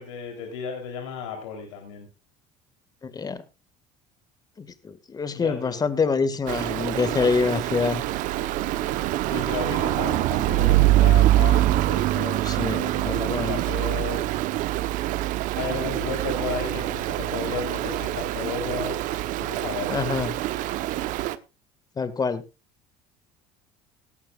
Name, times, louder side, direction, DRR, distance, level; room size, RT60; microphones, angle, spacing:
voice 1, 0.0-2.1 5.4-5.8 9.2-12.4 12.9-14.2 15.5-19.0 19.4-20.0, left 6 dB, 90° left, 3 dB, 3.6 m, -34 dB
voice 2, 3.0-3.4 4.6-8.0 12.4-13.6 19.9-20.3 22.0-22.4, left 5 dB, 25° left, 13 dB, 1.9 m, -26 dB
Stream, 6.5-21.3, right 15 dB, 65° right, 1.0 m, -24 dB
18.0 x 13.0 x 2.4 m, 0.28 s
supercardioid pair, 95°, 14 cm